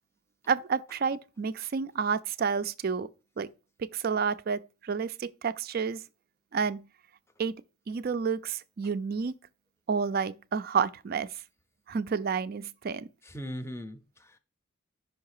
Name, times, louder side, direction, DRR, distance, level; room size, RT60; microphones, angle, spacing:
voice 1, 0.5-3.1 3.4-3.5 3.8-6.0 6.5-6.9 7.4-7.6 7.9-9.3 9.9-11.3 11.9-13.1, right 6 dB, 45° right, 0.4 m, -30 dB
voice 2, 13.2-14.4, equal, 15° left, 0.6 m, -39 dB
5.7 x 4.6 x 4.8 m
head